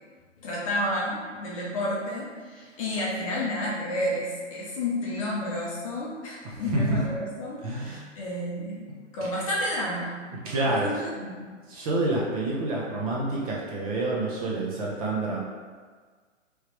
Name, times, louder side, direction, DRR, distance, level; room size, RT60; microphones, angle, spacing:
voice 1, 0.4-8.9 9.1-10.1 10.7-11.8, left 1 dB, 25° left, -5 dB, 0.7 m, -31 dB
voice 2, 7.6-8.0 10.4-10.9 11.7-15.4, right 2 dB, 30° right, -4 dB, 0.8 m, -27 dB
4.6 x 3.2 x 3.2 m, 1.5 s
hypercardioid pair, 140°, 39 cm